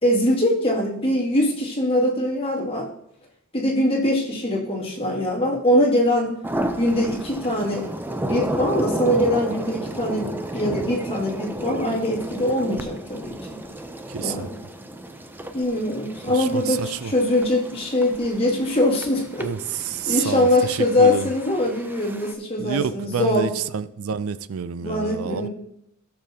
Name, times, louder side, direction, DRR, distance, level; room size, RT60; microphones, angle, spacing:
voice 1, 0.0-2.9 3.5-6.4 6.8-7.9 8.3-13.6 14.2-14.6 15.5-23.5 24.8-25.5, left 1 dB, 25° left, 2.3 m, -22 dB
sound 1, 6.4-22.3, right 1 dB, 10° right, 0.5 m, -33 dB
voice 2, 14.1-14.5 16.3-17.1 19.4-19.6 19.9-21.3 22.6-25.5, right 7 dB, 75° right, 0.4 m, -28 dB
16.0 x 6.9 x 2.8 m
head